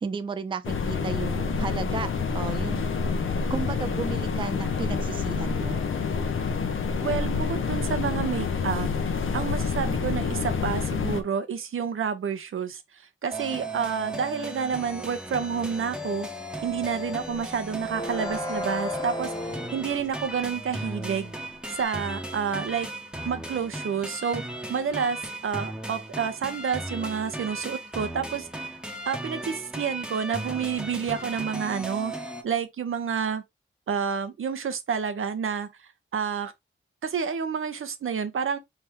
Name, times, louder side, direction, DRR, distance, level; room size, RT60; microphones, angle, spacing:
voice 1, 0.0-2.9 3.5-5.8, right 5 dB, 25° right, 0.3 m, -33 dB
sound 1, 0.6-11.2, left 5 dB, 80° left, 0.8 m, -28 dB
voice 2, 7.0-16.3 16.6-21.3 21.7-22.9 23.3-24.4 24.7-28.7 29.1-32.1 32.4-33.4 33.9-35.7 36.1-36.5 37.0-38.6, right 6 dB, 85° right, 0.8 m, -29 dB
sound 2, 13.3-32.4, right 1 dB, 5° right, 0.9 m, -36 dB
sound 3, 16.6-16.9 17.1-21.8, left 1 dB, 20° left, 0.9 m, -36 dB
4.3 x 3.4 x 3.3 m
wide cardioid pair, 140°, 21 cm